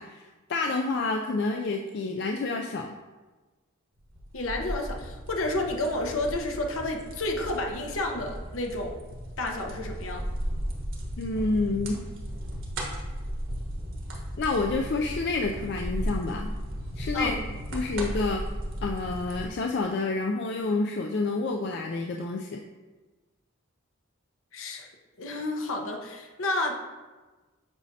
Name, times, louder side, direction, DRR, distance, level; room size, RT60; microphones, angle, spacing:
voice 1, 0.0-3.0 11.2-12.0 14.4-16.6 17.0-17.4 17.7-18.4 18.8-22.6, left 3 dB, 55° left, 2 dB, 0.4 m, -29 dB
sound 1, 4.0-19.5, equal, 70° right, 1.3 m, -35 dB
voice 2, 4.3-9.0 9.4-10.3 17.1-17.4 24.5-24.9 25.2-26.7, left 2 dB, 75° left, 2 dB, 1.0 m, -30 dB
8.0 x 5.2 x 2.8 m, 1.2 s
head